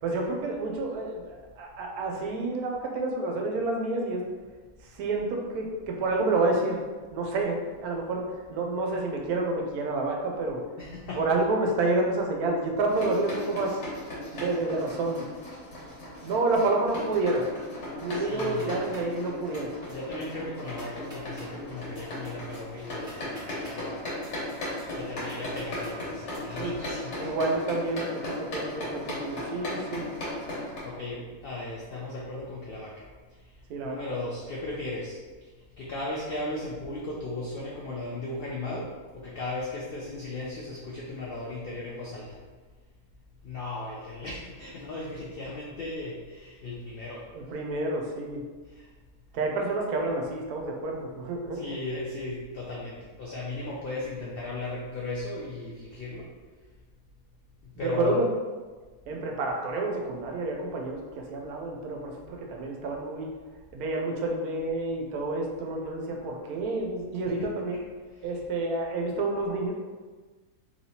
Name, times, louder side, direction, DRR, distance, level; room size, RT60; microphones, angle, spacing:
voice 1, 0.0-4.2 4.8-6.8 7.1-10.6 11.2-13.8 14.3-15.2 16.2-17.5 18.0-19.7 26.5-26.7 27.2-30.1 33.7-34.0 47.3-48.4 49.3-51.8 57.8-58.3 59.1-63.3 63.7-67.8 68.2-69.7, right 2 dB, 85° right, 1 dB, 1.1 m, -29 dB
voice 2, 10.8-11.2 18.1-18.9 19.9-24.0 24.9-27.4 30.8-33.1 33.8-35.2 35.8-42.4 43.4-47.3 48.7-48.8 51.5-56.3 57.8-58.2 67.7-67.9 68.2-68.3, left 2 dB, 85° left, -4 dB, 0.5 m, -36 dB
sound 1, 12.9-30.8, left 1 dB, 55° left, 1.2 m, -37 dB
sound 2, 18.6-19.1 19.5-19.9 20.2-20.3 20.6-21.5 21.9-23.8 24.2-25.9 26.3-26.4, equal, 5° right, 1.0 m, -49 dB
3.2 x 2.8 x 2.7 m, 1.4 s
omnidirectional pair, 1.6 m